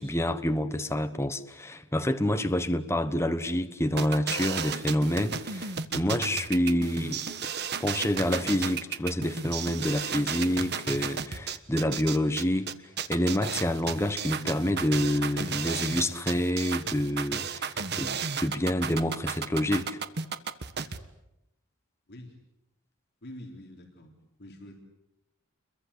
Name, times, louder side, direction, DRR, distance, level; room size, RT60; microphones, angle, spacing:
voice 1, 0.0-7.2 7.8-12.7 13.1-20.0, left 1 dB, 10° left, 1.2 m, -28 dB
sound 1, 4.0-21.0, right 6 dB, 50° right, 1.4 m, -33 dB
voice 2, 23.2-24.7, left 1 dB, 50° left, 3.6 m, -46 dB
29.5 x 22.5 x 8.4 m
head